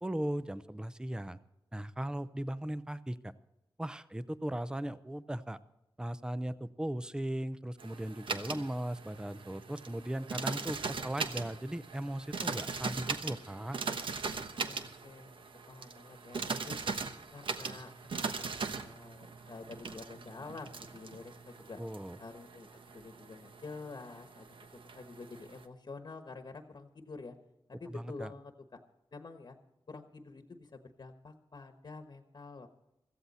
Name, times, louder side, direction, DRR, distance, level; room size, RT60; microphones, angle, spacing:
voice 1, 0.0-1.4 1.7-3.3 3.8-5.6 6.0-13.8 21.8-22.2 27.9-28.3, right 1 dB, 10° right, 15 dB, 0.6 m, -37 dB
sound 1, 7.8-25.7, right 4 dB, 70° right, 1.1 m, -40 dB
voice 2, 14.5-16.8 17.3-17.9 18.2-21.8 22.2-22.7 22.9-24.5 24.9-27.3 27.8-28.5 29.1-29.6 29.9-32.7, left 3 dB, 50° left, 7 dB, 1.3 m, -48 dB
16.5 x 14.5 x 4.2 m, 0.91 s
wide cardioid pair, 90°, 9 cm